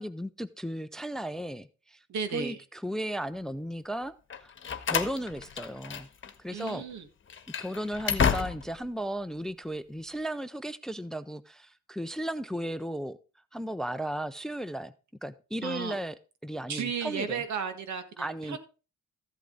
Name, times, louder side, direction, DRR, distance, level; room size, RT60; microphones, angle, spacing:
voice 1, 0.0-2.0 2.3-4.5 4.9-6.1 6.4-6.8 7.6-13.2 13.5-14.9 15.2-16.2 16.4-17.4 18.2-18.6, right 1 dB, ahead, 0.6 m, -35 dB
voice 2, 2.1-2.6 6.5-7.1 15.6-16.0 16.7-18.6, right 6 dB, 70° right, 1.9 m, -34 dB
Slam, 4.3-6.3 6.6-6.8 7.3-8.9, left 6 dB, 40° left, 1.3 m, -31 dB
14.5 x 8.2 x 4.0 m
cardioid pair, 90°, 30 cm